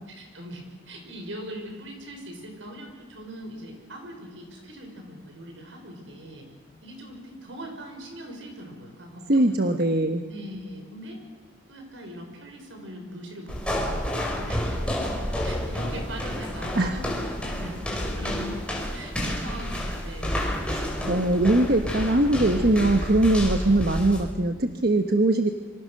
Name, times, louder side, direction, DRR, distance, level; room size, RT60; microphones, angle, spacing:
voice 1, 0.1-6.5 6.8-9.9 10.3-11.2 11.7-14.0 14.3-15.1 15.4-18.5 18.9-20.5, right 1 dB, 80° right, 3 dB, 6.2 m, -41 dB
voice 2, 9.3-10.2 16.8-17.0 20.7-25.5, right 1 dB, 55° right, 6 dB, 1.2 m, -21 dB
sound 1, 13.5-24.2, equal, 5° left, 5.0 m, -30 dB
27.0 x 25.0 x 6.6 m, 1.3 s
head